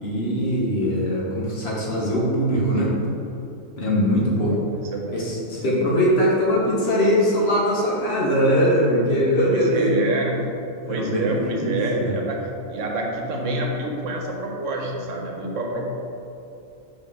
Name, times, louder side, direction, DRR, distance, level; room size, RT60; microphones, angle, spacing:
voice 1, 0.0-3.0 3.8-4.6 5.1-9.9 10.8-12.1, equal, 55° left, -4 dB, 1.3 m, -21 dB
voice 2, 4.2-4.6 4.9-5.3 5.6-6.1 9.5-10.5 10.9-15.9, right 2 dB, 70° right, 0 dB, 1.1 m, -27 dB
5.3 x 3.4 x 5.2 m, 2.8 s
omnidirectional pair, 1.3 m